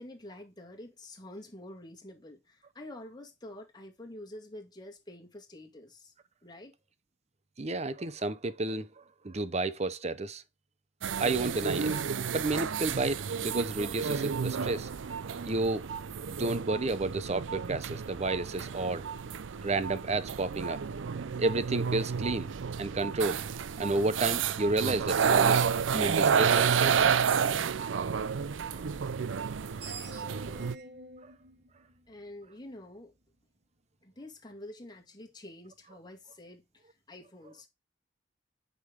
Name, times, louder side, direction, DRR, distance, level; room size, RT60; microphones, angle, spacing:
voice 1, 0.0-6.1 6.4-6.7 32.1-33.1 34.0-37.7, left 1 dB, 20° left, 2.1 m, -47 dB
voice 2, 7.6-8.9 9.2-10.4 11.2-12.0 12.3-14.9 15.4-15.9 16.4-19.0 19.6-20.8 21.4-22.5 22.8-23.4 23.8-25.7 25.9-27.1, right 2 dB, 35° right, 0.7 m, -31 dB
sound 1, 11.0-30.7, right 6 dB, 80° right, 0.5 m, -30 dB
Screech, 29.5-32.7, right 3 dB, 60° right, 1.9 m, -47 dB
9.5 x 5.3 x 3.7 m
head